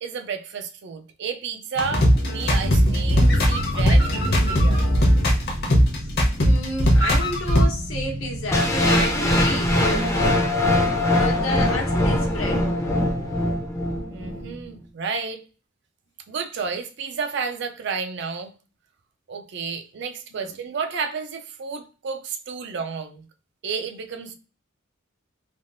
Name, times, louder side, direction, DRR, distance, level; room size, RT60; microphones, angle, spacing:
voice 1, 0.0-5.0 14.1-15.4 16.3-18.5 19.3-23.3 23.6-24.3, right 5 dB, 60° right, 0.4 m, -31 dB
sound 1, 1.8-7.7, equal, 55° left, 0.8 m, -18 dB
sound 2, 2.4-10.4, equal, 75° right, 1.2 m, -34 dB
voice 2, 6.0-10.3 11.1-12.7 20.3-20.5, left 1 dB, 80° left, 1.0 m, -31 dB
sound 3, 8.5-14.5, left 1 dB, 15° left, 0.5 m, -22 dB
3.4 x 2.3 x 2.5 m
head